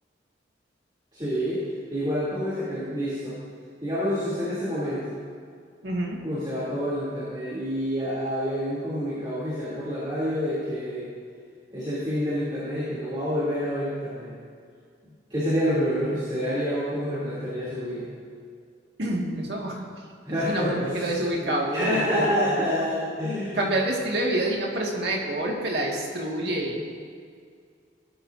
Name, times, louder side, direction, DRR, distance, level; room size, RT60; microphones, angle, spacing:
voice 1, 1.1-3.4 3.8-5.1 6.2-11.1 11.7-14.3 15.3-18.1 20.2-23.6, equal, 25° right, -10 dB, 3.1 m, -28 dB
voice 2, 5.8-6.2 19.0-19.9 20.4-22.0 23.5-26.8, right 1 dB, 60° right, -2 dB, 2.1 m, -27 dB
18.5 x 12.5 x 2.7 m, 2.2 s
head